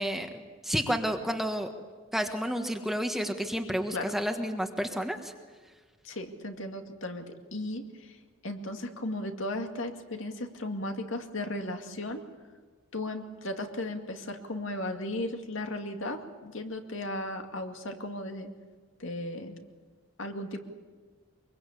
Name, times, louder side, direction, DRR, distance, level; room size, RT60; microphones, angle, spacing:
voice 1, 0.0-1.7 2.1-5.3, equal, ahead, 5 dB, 1.4 m, -31 dB
voice 2, 6.0-8.2 8.4-12.2 12.9-18.5 19.0-19.5 20.2-20.6, left 1 dB, 70° left, 5 dB, 2.3 m, -36 dB
24.0 x 23.5 x 8.5 m, 1.4 s
head